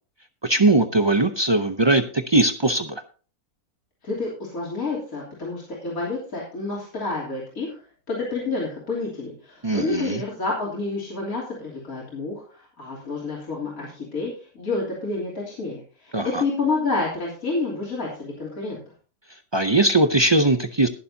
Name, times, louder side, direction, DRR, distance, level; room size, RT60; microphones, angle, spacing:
voice 1, 0.4-3.0 9.6-10.2 16.1-16.4 19.5-20.9, right 2 dB, 45° right, 8 dB, 0.3 m, -20 dB
voice 2, 4.0-7.7 8.1-18.8, left 3 dB, 65° left, -5 dB, 3.6 m, -29 dB
20.5 x 7.0 x 2.8 m, 0.39 s
omnidirectional pair, 1.5 m